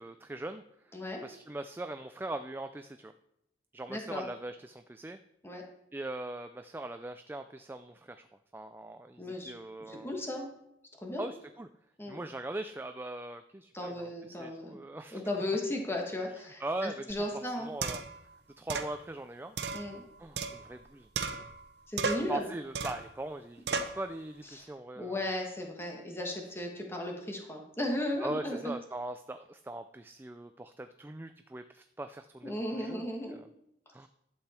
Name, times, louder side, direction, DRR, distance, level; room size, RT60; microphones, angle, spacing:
voice 1, 0.0-3.1 3.7-5.2 5.9-8.3 8.5-10.1 11.2-11.7 12.1-15.2 16.6-18.0 18.6-19.6 20.2-21.4 22.3-25.2 28.2-33.4 33.9-34.1, right 2 dB, 10° right, 8 dB, 0.3 m, -41 dB
voice 2, 0.9-1.2 3.9-4.3 5.4-5.6 9.2-9.5 9.9-10.5 11.0-11.2 12.0-12.2 13.7-14.8 15.1-17.7 19.7-20.0 21.9-22.5 24.5-24.7 25.0-28.7 32.4-33.4, left 1 dB, 15° left, 1 dB, 1.4 m, -35 dB
sound 1, 17.1-17.2 17.8-18.2 18.7-18.9 19.6-20.8 21.1-21.7 22.0-22.4 22.7-23.1 23.7-24.0, right 4 dB, 70° right, 0.9 m, -35 dB
12.0 x 8.0 x 4.3 m, 0.79 s
head